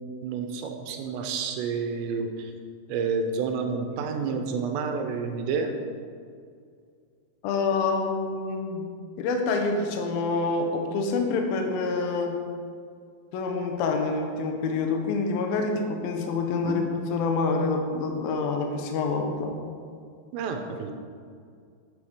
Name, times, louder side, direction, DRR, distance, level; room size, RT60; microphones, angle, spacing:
voice 1, 0.0-2.5 2.9-5.8 16.6-16.7 20.3-20.9, right 5 dB, 85° right, 4 dB, 3.0 m, -29 dB
voice 2, 7.4-8.9 9.2-12.4 13.3-19.6, left 4 dB, 80° left, 3 dB, 2.2 m, -27 dB
8.7 x 8.4 x 4.9 m, 2.2 s
omnidirectional pair, 5.2 m